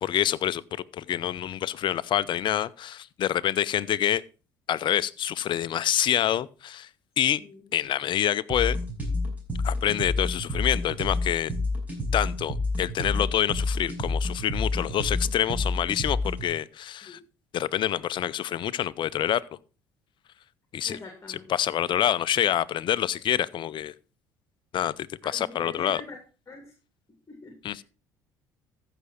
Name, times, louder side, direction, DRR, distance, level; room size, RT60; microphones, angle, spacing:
voice 1, 0.0-0.6 0.9-4.2 4.7-6.9 7.2-7.4 7.7-8.8 9.6-11.5 12.1-17.2 17.5-19.4 20.7-21.0 21.3-23.9 24.7-26.0 27.6-27.8, left 11 dB, 50° left, 0.6 m, -27 dB
voice 2, 7.4-7.7 17.0-17.2 20.9-21.5 25.3-26.2 26.5-26.7 27.3-27.8, left 3 dB, 25° left, 2.6 m, -43 dB
sound 1, 8.5-16.5, left 2 dB, 15° right, 5.4 m, -29 dB
14.5 x 6.0 x 4.3 m
hypercardioid pair, 60°, 11 cm